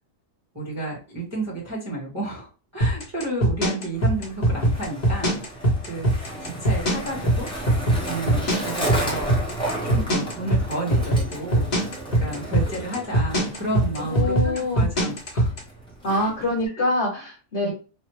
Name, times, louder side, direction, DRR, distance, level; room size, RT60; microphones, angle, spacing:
voice 1, 0.5-7.5 8.1-9.3 9.8-15.5 16.1-16.3 16.8-16.9 17.6-17.7, right 2 dB, 10° right, -5 dB, 1.0 m, -32 dB
sound 1, 2.8-15.6, right 1 dB, 35° left, 0.8 m, -20 dB
Skateboard, 3.9-16.7, right 1 dB, 5° left, 0.6 m, -34 dB
voice 2, 14.0-14.9 16.0-17.7, left 1 dB, 50° left, -1 dB, 1.2 m, -25 dB
3.3 x 2.1 x 3.0 m, 0.34 s
omnidirectional pair, 1.6 m